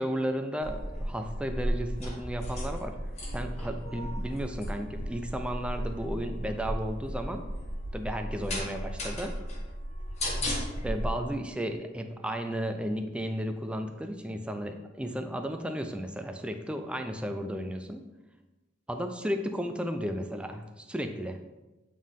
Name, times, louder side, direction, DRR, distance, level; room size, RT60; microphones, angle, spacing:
voice 1, 0.0-3.0 3.3-7.4 7.9-9.3 10.8-18.0 18.9-21.4, equal, 5° right, 6 dB, 0.4 m, -34 dB
sound 1, 0.6-11.1, equal, 35° left, 1.4 m, -35 dB
8.4 x 3.7 x 3.6 m, 1.1 s
head